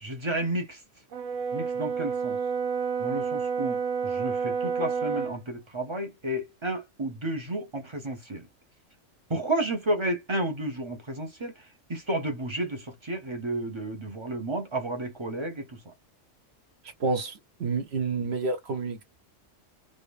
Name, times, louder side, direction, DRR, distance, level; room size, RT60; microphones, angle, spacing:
voice 1, 0.0-0.8 1.5-2.4 3.0-8.5 9.3-15.9, right 1 dB, 30° right, 0.5 m, -32 dB
Brass instrument, 1.1-5.4, right 6 dB, 85° right, 1.0 m, -29 dB
voice 2, 17.0-19.0, right 3 dB, 60° right, 1.0 m, -29 dB
3.0 x 2.5 x 3.3 m
omnidirectional pair, 1.3 m